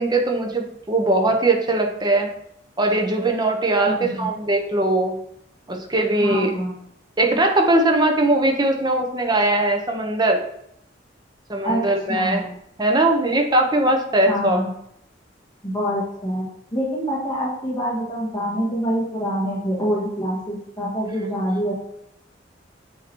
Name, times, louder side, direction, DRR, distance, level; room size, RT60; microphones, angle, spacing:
voice 1, 0.0-2.3 2.8-5.1 5.7-6.5 7.2-10.4 11.5-12.4 12.8-14.6, right 2 dB, 25° right, 2 dB, 0.8 m, -20 dB
voice 2, 6.2-6.7 11.6-12.6 14.3-14.7 15.6-16.5 16.7-21.7, equal, 25° left, -5 dB, 1.7 m, -25 dB
8.5 x 2.9 x 4.5 m, 0.73 s
head